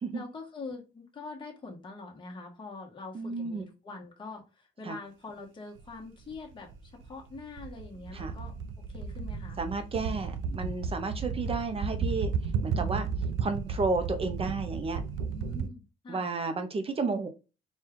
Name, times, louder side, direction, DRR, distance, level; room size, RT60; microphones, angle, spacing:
voice 1, 0.1-9.6 15.3-16.3, left 3 dB, 25° left, 0 dB, 1.1 m, -44 dB
voice 2, 3.1-3.7 4.8-5.0 8.1-8.3 9.6-12.3 12.6-13.1 13.4-15.0 16.1-17.3, right 3 dB, 30° right, 8 dB, 0.6 m, -32 dB
sound 1, 5.8-5.9 6.3-15.7, right 5 dB, 90° right, 0.5 m, -33 dB
4.4 x 2.3 x 3.6 m, 0.31 s
cardioid pair, 135°, 19 cm